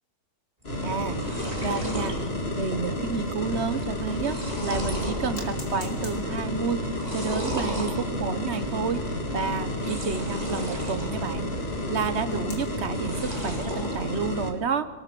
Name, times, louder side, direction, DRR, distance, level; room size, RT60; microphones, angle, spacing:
sound 1, 0.6-14.5, left 1 dB, 35° left, 2.4 m, -31 dB
sound 2, 0.6-0.7 0.9-2.2 2.6-3.0 3.3-3.4 3.9-5.2 5.7-6.1 6.9-7.9 9.7-11.1 11.5-12.1 12.8-13.9, right 1 dB, 20° right, 3.8 m, -35 dB
sound 3, 0.7-3.6 4.2-4.3 5.4-11.4 12.3-13.0, left 2 dB, 60° left, 3.5 m, -50 dB
voice 1, 0.8-1.2 1.6-2.2 2.5-4.4 4.6-6.8 7.1-9.0 9.3-11.5 11.9-14.9, right 5 dB, 45° right, 11 dB, 1.1 m, -30 dB
25.5 x 19.5 x 6.1 m, 1.3 s
omnidirectional pair, 1.8 m